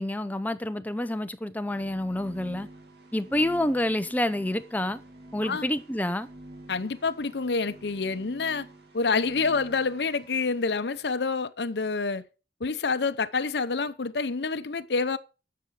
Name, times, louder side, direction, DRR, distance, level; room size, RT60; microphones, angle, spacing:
voice 1, 0.0-2.7 3.1-5.0 5.3-6.3, left 1 dB, 10° left, 0.6 m, -28 dB
sound 1, 1.6-10.7, right 1 dB, 65° right, 2.5 m, -48 dB
voice 2, 6.7-8.7 8.9-12.2 12.6-15.2, left 4 dB, 70° left, 0.7 m, -27 dB
11.5 x 6.8 x 4.8 m
head